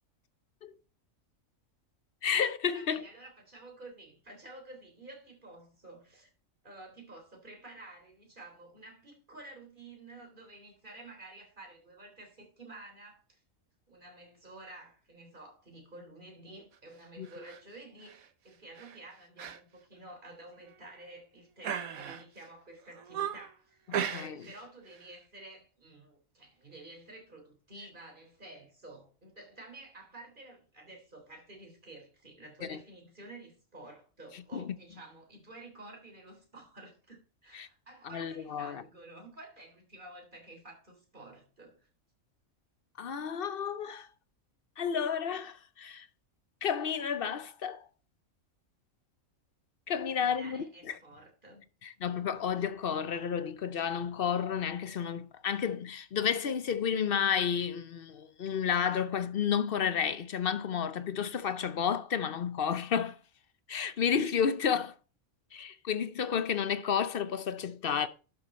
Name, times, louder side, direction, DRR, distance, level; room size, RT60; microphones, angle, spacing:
voice 1, 2.2-3.0 17.2-17.3 23.9-24.5 32.6-32.8 34.5-34.7 37.5-37.7 38.1-38.8 43.0-44.1 44.8-46.1 46.6-47.8 49.9-50.9 51.8-63.2 63.7-64.9 65.5-68.1, left 7 dB, 50° left, 0.7 m, -31 dB
voice 2, 2.7-6.3 6.6-13.4 13.9-41.9 50.1-51.7, right 2 dB, 35° right, 3.7 m, -51 dB
sound 1, 17.2-17.6 18.0-18.3 18.8-19.0 19.4-19.6 19.9-20.0 20.7-21.1 21.6-22.4 22.8-23.5 23.9-24.6 24.9-25.1, right 8 dB, 85° right, 1.4 m, -37 dB
12.0 x 7.0 x 4.2 m
omnidirectional pair, 1.4 m